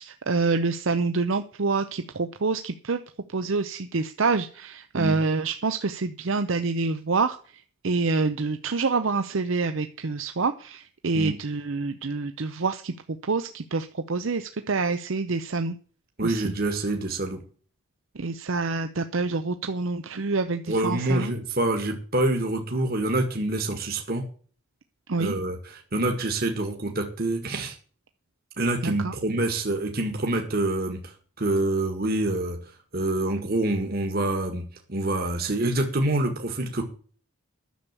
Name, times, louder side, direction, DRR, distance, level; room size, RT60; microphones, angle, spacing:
voice 1, 0.0-3.0 3.3-12.9 13.2-15.8 16.2-16.5 18.1-21.3 25.1-25.3 28.8-29.1, right 4 dB, 65° right, 9 dB, 0.7 m, -27 dB
voice 2, 16.2-17.4 20.7-24.3 25.2-27.8 28.6-32.6 32.9-34.6 34.9-36.8, right 2 dB, 45° right, 4 dB, 1.7 m, -26 dB
10.5 x 7.1 x 8.3 m, 0.42 s
head